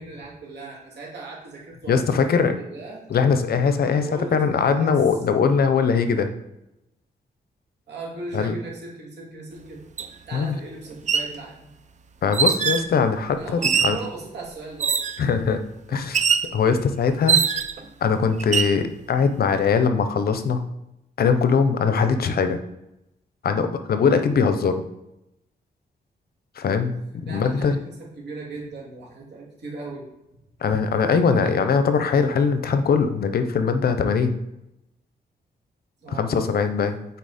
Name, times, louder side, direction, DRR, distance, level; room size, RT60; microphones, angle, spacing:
voice 1, 0.0-1.9 2.2-3.0 3.5-3.6 4.0-5.0 7.9-9.8 10.3-11.7 13.4-15.0 27.2-30.1 31.1-31.6 36.0-36.3, right 3 dB, 85° right, -3 dB, 2.6 m, -38 dB
voice 2, 1.9-2.6 3.1-4.1 4.3-6.3 8.3-8.5 10.3-10.6 12.2-14.0 15.2-15.6 15.9-16.2 16.5-17.4 18.0-20.6 21.2-22.6 23.4-24.8 26.6-27.0 27.2-27.8 30.6-34.4 36.1-37.0, left 5 dB, 65° left, 9 dB, 0.7 m, -21 dB
sound 1, 10.0-10.1 10.9-11.3 12.3-12.9 13.6-14.0 14.8-15.2 16.1-16.5 17.3-17.8 18.4-18.8, right 7 dB, 45° right, 0.5 m, -22 dB
8.2 x 4.3 x 4.2 m, 0.88 s
wide cardioid pair, 160°, 17 cm